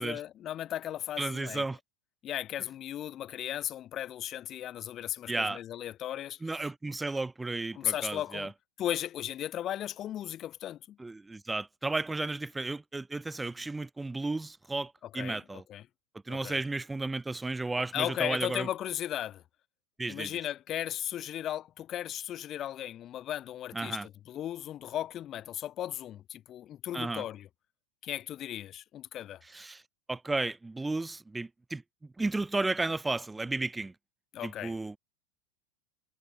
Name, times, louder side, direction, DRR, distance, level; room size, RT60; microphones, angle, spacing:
voice 1, 0.0-1.6 2.2-6.4 7.8-8.5 8.8-11.0 15.1-15.4 15.7-15.8 16.3-16.6 17.9-19.4 20.1-27.5 28.0-29.4 34.3-34.7, left 11 dB, 40° left, 1.7 m, -36 dB
voice 2, 1.2-1.8 5.3-5.6 6.4-8.5 11.0-15.6 16.3-18.7 20.0-20.4 23.7-24.1 26.9-27.2 29.5-29.8 30.1-31.8 32.2-33.9 34.4-35.0, right 2 dB, 10° right, 1.3 m, -33 dB
hypercardioid pair, 105°, 0 cm